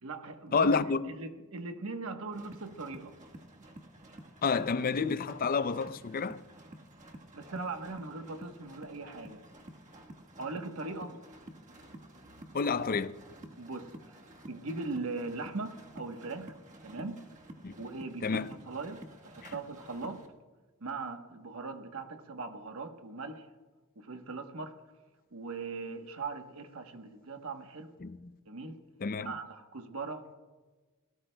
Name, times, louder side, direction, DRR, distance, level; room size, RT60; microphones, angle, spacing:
voice 1, 0.0-3.2 7.3-9.4 10.4-11.1 13.6-14.2 14.5-16.5 16.8-17.3 17.8-20.3 20.8-23.5 24.0-24.8 25.3-27.9 28.5-28.8 29.2-30.3, right 3 dB, 75° right, 1.1 m, -40 dB
voice 2, 0.5-1.2 4.4-6.4 12.5-13.2 17.6-17.7 18.2-18.5 19.4-19.5 28.0-28.2 29.0-29.3, left 5 dB, 40° left, 0.5 m, -29 dB
sound 1, 2.3-20.3, right 1 dB, 35° right, 1.4 m, -51 dB
26.0 x 17.5 x 2.2 m
head